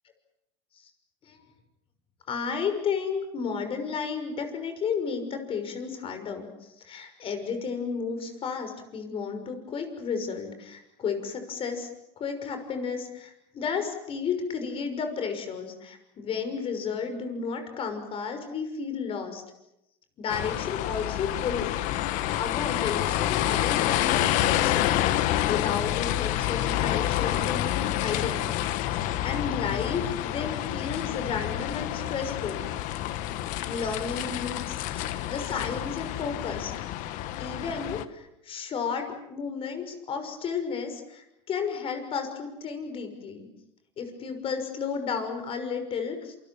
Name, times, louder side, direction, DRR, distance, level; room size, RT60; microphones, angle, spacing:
voice 1, 2.3-11.9 12.2-19.4 20.2-21.7 22.4-28.5 28.8-32.7 33.6-36.7 37.0-43.5 44.0-46.4, left 6 dB, 40° left, 7 dB, 6.2 m, -33 dB
sound 1, 20.3-38.0, left 13 dB, 60° left, 1.5 m, -28 dB
27.5 x 26.0 x 7.2 m, 0.86 s
supercardioid pair, 105°, 15 cm